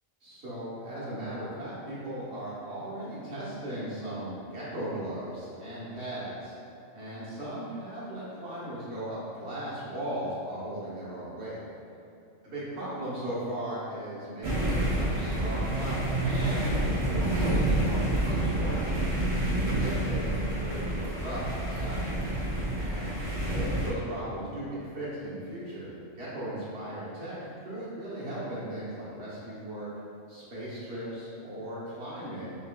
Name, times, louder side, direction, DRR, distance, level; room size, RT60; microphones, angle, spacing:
voice 1, 0.2-6.5 6.9-11.6 12.4-19.1 19.4-22.1 22.7-23.1 23.5-29.9 30.3-32.6, right 1 dB, 55° right, -9 dB, 1.4 m, -37 dB
sound 1, 14.4-23.9, right 1 dB, 35° right, 0.6 m, -28 dB
5.6 x 3.1 x 2.2 m, 2.7 s
omnidirectional pair, 1.4 m